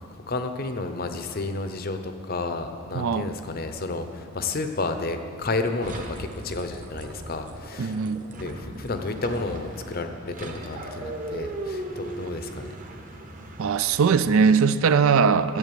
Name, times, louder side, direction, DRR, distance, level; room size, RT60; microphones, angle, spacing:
voice 1, 0.3-8.0 8.3-12.7, left 3 dB, 45° left, 7 dB, 0.7 m, -31 dB
voice 2, 2.9-3.3 7.8-8.2 13.6-15.6, right 5 dB, 70° right, 14 dB, 0.4 m, -20 dB
sound 1, 5.8-14.5, right 1 dB, 35° right, 1.0 m, -38 dB
11.0 x 8.5 x 6.9 m, 2.5 s
head